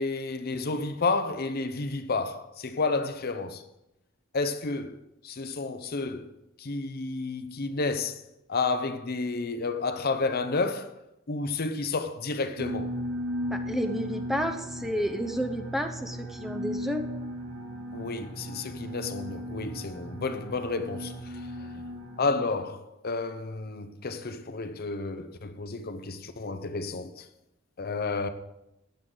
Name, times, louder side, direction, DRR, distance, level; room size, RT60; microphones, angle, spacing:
voice 1, 0.0-3.6 4.3-5.0 5.2-6.3 6.6-8.2 8.5-11.0 11.3-12.9 17.9-21.7 22.2-27.3 27.8-28.3, left 3 dB, 50° left, 0.7 m, -31 dB
sound 1, 12.6-22.4, equal, 65° right, 2.4 m, -36 dB
voice 2, 13.5-17.0 21.7-21.8, equal, ahead, 0.7 m, -31 dB
14.0 x 9.5 x 3.9 m
head